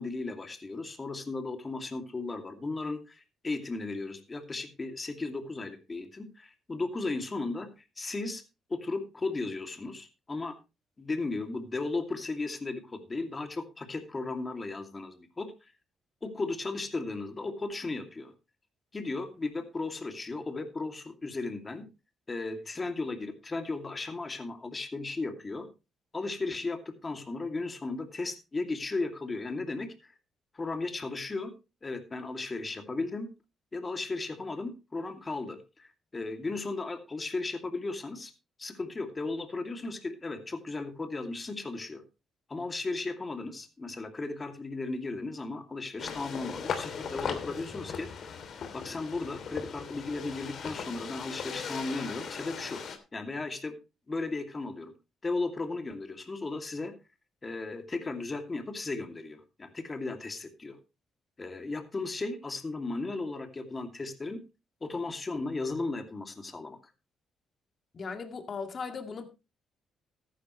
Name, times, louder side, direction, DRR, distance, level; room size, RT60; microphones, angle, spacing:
voice 1, 0.0-7.7 8.0-8.4 8.7-10.6 11.0-15.7 16.2-18.3 18.9-21.9 22.3-25.7 26.1-30.1 30.5-31.5 31.8-33.3 33.7-38.3 38.6-42.0 42.5-48.3 48.7-52.8 53.1-53.8 54.1-54.9 55.2-56.9 57.4-60.8 61.4-64.4 64.8-66.8, left 3 dB, 25° left, 2.6 m, -35 dB
sound 1, 46.0-53.0, left 6 dB, 60° left, 2.9 m, -38 dB
voice 2, 67.9-69.3, left 5 dB, 45° left, 2.1 m, -37 dB
14.0 x 11.5 x 3.1 m
cardioid pair, 90°, 0 cm